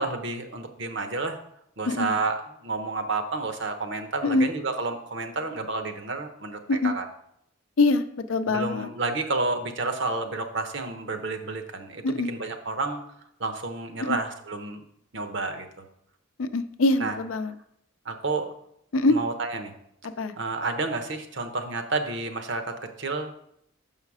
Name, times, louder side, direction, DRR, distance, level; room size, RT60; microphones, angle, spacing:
voice 1, 0.0-1.4 1.8-7.0 8.5-13.0 13.4-14.8 15.1-15.7 17.0-17.1 18.0-18.5 19.1-19.7 20.4-23.3, right 3 dB, 60° right, 7 dB, 0.9 m, -30 dB
voice 2, 7.8-8.9 12.0-12.3 14.0-14.2 16.4-17.5 18.9-19.2 20.0-20.3, left 2 dB, 85° left, 10 dB, 0.5 m, -24 dB
6.5 x 5.7 x 4.8 m, 0.74 s
head